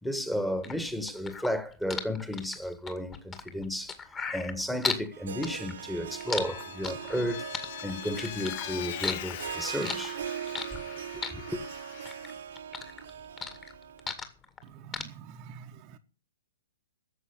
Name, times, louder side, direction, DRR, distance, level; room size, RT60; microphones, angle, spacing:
voice 1, 0.0-7.4 7.8-10.2 11.1-11.6, equal, 5° left, 1.7 m, -33 dB
sound 1, 0.6-5.1 5.4-7.2 7.5-8.6 9.0-10.9 11.2-12.3 12.6-14.6 14.9-15.0, left 5 dB, 20° left, 2.1 m, -35 dB
Harp, 5.1-14.1, right 9 dB, 65° right, 1.3 m, -41 dB
Vehicle, 6.0-12.4, left 13 dB, 45° left, 0.7 m, -42 dB
voice 2, 14.6-16.0, right 7 dB, 35° right, 1.2 m, -47 dB
13.0 x 7.6 x 8.7 m
figure-of-eight pair, 115°, 0 cm